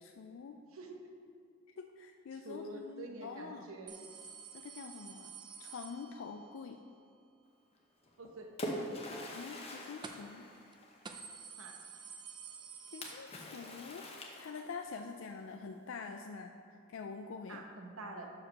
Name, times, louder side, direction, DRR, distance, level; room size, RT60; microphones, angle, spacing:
voice 1, 0.0-0.6 1.8-3.7 4.5-6.8 9.3-10.5 12.9-14.1 14.4-17.6, left 5 dB, 70° left, 5 dB, 0.3 m, -46 dB
voice 2, 2.3-4.0 8.2-8.5 11.6-11.8 17.5-18.3, right 2 dB, 85° right, 3 dB, 0.9 m, -46 dB
sound 1, 3.9-6.6 10.0-10.4 10.7-10.8 11.1-13.8 14.1-14.2 15.2-15.3, right 6 dB, 20° right, 0.3 m, -50 dB
Splash splatter, 8.0-11.2 13.0-14.9, equal, 30° left, 0.8 m, -44 dB
6.3 x 4.9 x 5.8 m, 2.4 s
head